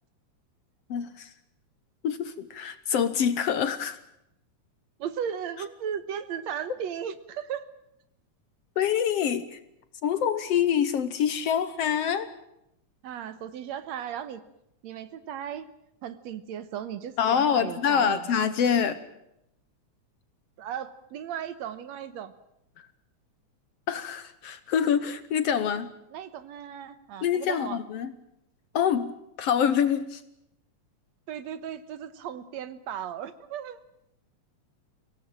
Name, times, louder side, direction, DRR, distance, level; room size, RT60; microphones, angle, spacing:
voice 1, 0.9-1.3 2.0-4.0 8.8-9.6 10.0-12.3 17.2-19.0 23.9-25.9 27.2-28.1 28.7-29.1 29.4-30.2, left 8 dB, 65° left, 13 dB, 1.8 m, -25 dB
voice 2, 5.0-7.7 13.0-14.5 14.8-15.7 16.0-18.3 20.6-22.3 26.1-27.8 31.3-33.8, right 9 dB, 70° right, 14 dB, 2.2 m, -36 dB
24.0 x 18.0 x 8.9 m, 0.81 s
omnidirectional pair, 3.5 m